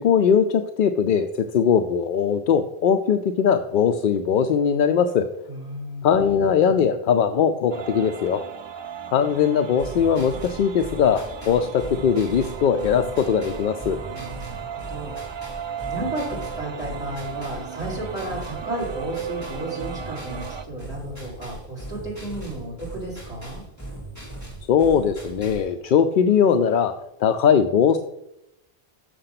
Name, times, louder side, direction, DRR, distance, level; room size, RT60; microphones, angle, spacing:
voice 1, 0.0-5.3 6.0-8.4 9.1-14.0 24.7-26.9 27.2-28.0, left 7 dB, 60° left, 8 dB, 0.6 m, -20 dB
voice 2, 5.5-6.2 14.1-15.1 15.9-23.6, right 1 dB, 40° left, -4 dB, 4.0 m, -33 dB
sound 1, 7.7-20.6, right 8 dB, 50° right, 0.3 m, -36 dB
sound 2, 9.8-25.7, right 1 dB, 15° left, 2.4 m, -39 dB
6.8 x 6.6 x 5.8 m, 0.85 s
omnidirectional pair, 1.0 m